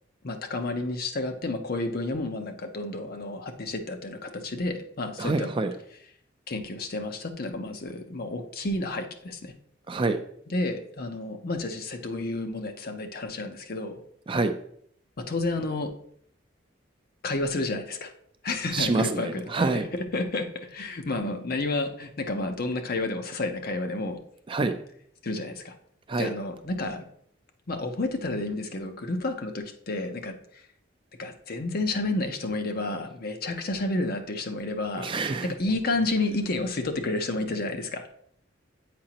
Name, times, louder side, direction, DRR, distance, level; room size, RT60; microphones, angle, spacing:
voice 1, 0.2-5.5 6.5-9.5 10.5-14.0 15.2-15.9 17.2-18.1 18.4-24.2 25.2-25.8 26.2-27.1 27.7-30.4 31.2-35.1 35.4-38.1, left 2 dB, 50° left, 6 dB, 0.7 m, -30 dB
voice 2, 5.2-5.7 9.9-10.2 14.3-14.5 18.7-19.8 24.5-24.7 26.1-26.3 35.0-35.5, right 3 dB, 25° right, 8 dB, 0.4 m, -26 dB
7.6 x 4.9 x 2.9 m, 0.65 s
head